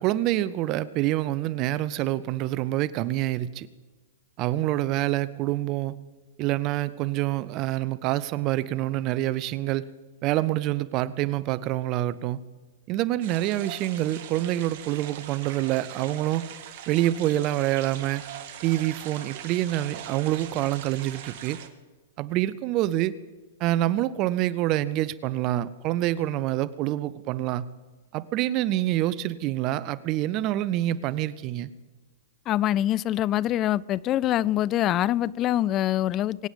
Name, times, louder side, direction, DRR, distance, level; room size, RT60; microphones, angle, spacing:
voice 1, 0.0-3.7 4.4-5.9 6.4-9.9 10.2-12.4 12.9-16.5 16.9-18.2 18.6-21.6 22.2-23.2 23.6-27.6 28.1-31.7, right 14 dB, 40° right, 18 dB, 0.7 m, -26 dB
sound 1, 13.2-21.7, right 9 dB, 55° right, 1.6 m, -41 dB
voice 2, 32.5-36.5, left 13 dB, 35° left, 23 dB, 0.4 m, -24 dB
24.0 x 9.1 x 5.3 m, 1.3 s
hypercardioid pair, 110°, 0 cm